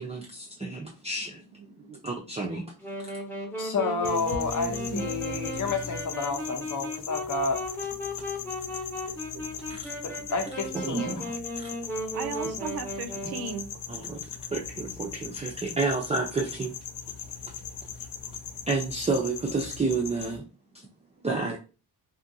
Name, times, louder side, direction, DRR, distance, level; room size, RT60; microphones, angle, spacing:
voice 1, 0.0-1.4 2.0-2.7 4.9-5.0 9.7-9.8 10.8-11.2 11.6-11.7 13.9-16.7 17.2-17.6 18.0-18.1 18.7-20.4 20.7-20.9 21.2-21.6, right 3 dB, 15° right, 0.4 m, -30 dB
voice 2, 1.6-2.0 4.7-5.2 9.3-10.2 12.1-13.7, right 6 dB, 70° right, 0.5 m, -38 dB
Wind instrument woodwind instrument, 2.8-13.7, left 1 dB, 5° left, 0.9 m, -36 dB
voice 3, 3.6-7.8 10.0-11.3, left 3 dB, 50° left, 0.8 m, -30 dB
sound 1, 4.0-20.4, left 7 dB, 85° left, 0.6 m, -39 dB
2.8 x 2.4 x 2.6 m
cardioid pair, 95°, 40 cm